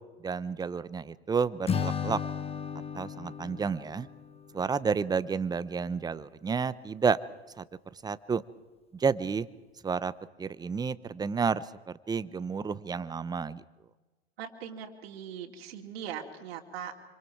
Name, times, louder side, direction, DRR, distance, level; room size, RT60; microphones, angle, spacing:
voice 1, 0.2-2.2 2.9-4.1 4.5-7.2 7.6-7.7 8.0-8.4 8.9-9.5 9.8-10.1 10.4-13.6, right 5 dB, 10° right, 16 dB, 0.7 m, -30 dB
Acoustic guitar / Strum, 1.7-4.9, left 7 dB, 20° left, 1.0 m, -35 dB
voice 2, 14.4-16.9, right 8 dB, 65° right, 1 dB, 2.8 m, -40 dB
26.5 x 25.5 x 4.7 m, 1.2 s
hypercardioid pair, 100°, 32 cm